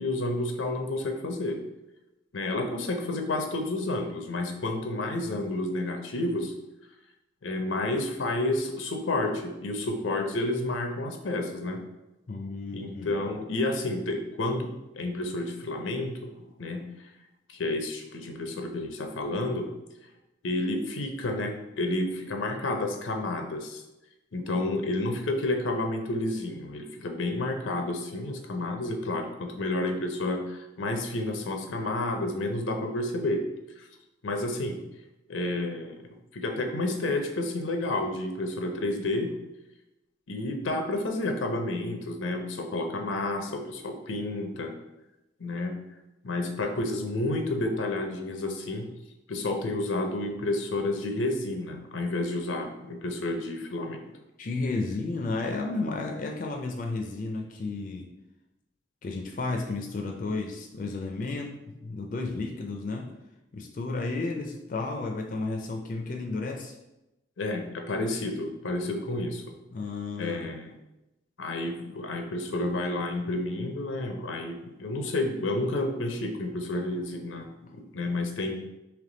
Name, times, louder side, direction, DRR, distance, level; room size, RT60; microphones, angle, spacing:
voice 1, 0.0-1.6 2.3-6.5 7.4-11.8 12.7-16.8 17.5-19.7 20.4-23.8 24.3-33.4 33.8-33.9 34.2-34.8 35.3-36.0 36.3-39.4 40.3-44.7 45.4-45.7 46.2-48.9 49.3-54.0 67.4-69.5 70.2-70.7 71.4-78.6, left 2 dB, 90° left, 4 dB, 0.6 m, -30 dB
voice 2, 12.3-13.2 54.4-58.1 59.0-61.5 61.8-63.1 63.5-66.7 69.7-70.5, left 3 dB, 45° left, 1 dB, 0.4 m, -32 dB
3.4 x 2.9 x 3.8 m, 0.96 s
head